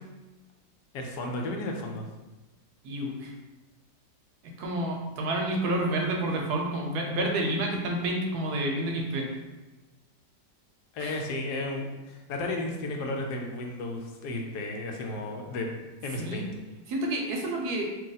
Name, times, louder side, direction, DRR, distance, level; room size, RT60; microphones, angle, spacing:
voice 1, 0.9-2.0 10.9-15.7 16.0-16.4, left 2 dB, 75° left, 2 dB, 1.1 m, -33 dB
voice 2, 2.8-3.3 4.4-9.3 11.0-11.2 16.2-16.5 16.9-17.8, right 1 dB, 75° right, 1 dB, 1.1 m, -29 dB
2.9 x 2.7 x 3.8 m, 1.1 s
omnidirectional pair, 1.8 m